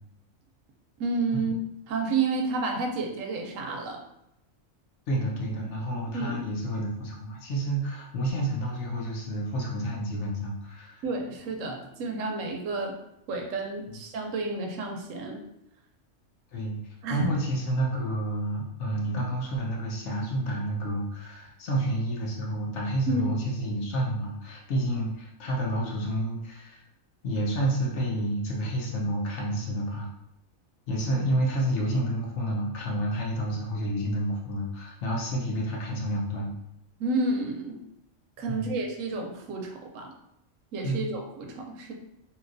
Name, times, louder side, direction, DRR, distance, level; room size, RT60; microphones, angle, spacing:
voice 1, 1.0-1.6 1.9-4.0 6.1-6.4 11.0-13.0 13.3-15.4 17.0-17.3 23.1-23.3 37.0-37.8 38.4-40.1 40.7-41.9, right 3 dB, 80° right, 2 dB, 1.0 m, -30 dB
voice 2, 5.1-11.0 13.9-14.0 16.5-16.8 17.1-26.8 27.2-30.1 30.9-36.5 38.5-38.7 40.8-41.1, right 1 dB, 65° left, -2 dB, 1.0 m, -29 dB
3.0 x 2.9 x 2.5 m, 0.82 s
omnidirectional pair, 1.3 m